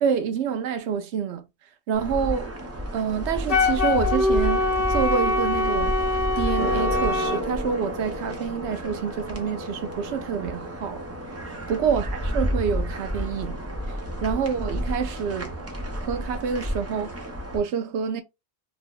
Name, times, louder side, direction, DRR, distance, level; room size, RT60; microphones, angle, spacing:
voice 1, 0.0-1.4 1.9-2.5 2.9-5.9 6.4-11.0 11.7-13.6 14.2-15.5 16.0-17.1 17.5-18.2, right 7 dB, 90° right, 0.9 m, -27 dB
sound 1, 1.9-17.6, equal, 15° right, 0.6 m, -31 dB
Wind instrument woodwind instrument, 3.5-7.4, left 2 dB, 40° left, 0.7 m, -23 dB
2.8 x 2.0 x 3.6 m
omnidirectional pair, 1.1 m